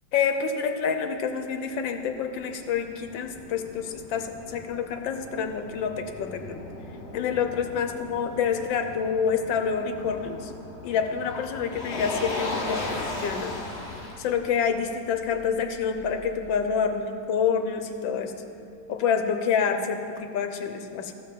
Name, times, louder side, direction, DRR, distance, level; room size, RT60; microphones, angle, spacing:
voice 1, 0.1-6.6 7.1-10.5 10.8-13.5 14.2-18.3 18.9-21.1, left 6 dB, 85° left, 7 dB, 1.5 m, -27 dB
Motor vehicle (road), 1.7-16.7, left 1 dB, 35° left, 1.4 m, -38 dB
14.0 x 5.5 x 7.1 m, 2.5 s
omnidirectional pair, 2.1 m